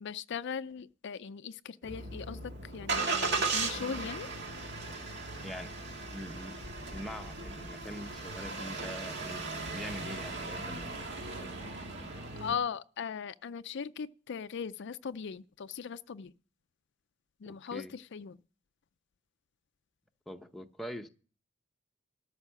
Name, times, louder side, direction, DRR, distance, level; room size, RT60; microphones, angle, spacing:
voice 1, 0.0-4.3 12.4-16.3 17.4-18.4, left 6 dB, 60° left, 0.4 m, -39 dB
Engine starting, 1.8-12.6, right 3 dB, 60° right, 2.0 m, -37 dB
voice 2, 5.4-5.7 6.1-6.6 6.9-10.9 17.5-17.9 20.3-21.1, equal, ahead, 0.7 m, -43 dB
13.0 x 5.4 x 7.5 m
head